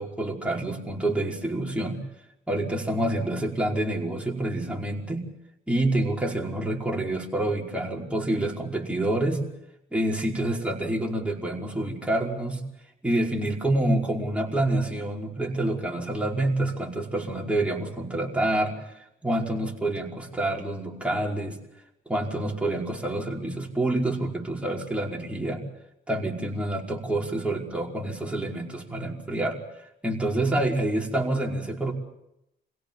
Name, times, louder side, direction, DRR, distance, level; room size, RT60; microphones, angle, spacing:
voice 1, 0.0-2.0 2.5-5.2 5.7-9.4 9.9-12.6 13.0-21.6 22.0-25.6 26.1-29.6 30.0-31.9, right 1 dB, 5° right, -2 dB, 5.1 m, -27 dB
27.0 x 17.0 x 7.4 m, 0.84 s
cardioid pair, 90°, 20 cm